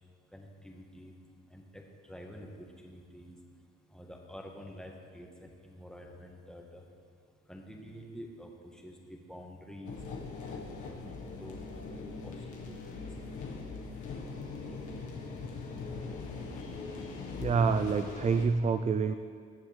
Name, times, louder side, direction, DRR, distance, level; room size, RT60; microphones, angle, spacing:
voice 1, 0.3-1.1 1.5-3.4 3.9-6.8 7.5-10.0 10.5-11.0 11.4-12.4 12.6-13.0, equal, ahead, 0 dB, 1.6 m, -48 dB
sound 1, 9.9-18.4, left 4 dB, 75° left, 1.7 m, -41 dB
voice 2, 17.4-19.1, right 5 dB, 25° right, 10 dB, 0.3 m, -27 dB
19.5 x 7.2 x 3.5 m, 2.1 s
cardioid pair, 90°, 30 cm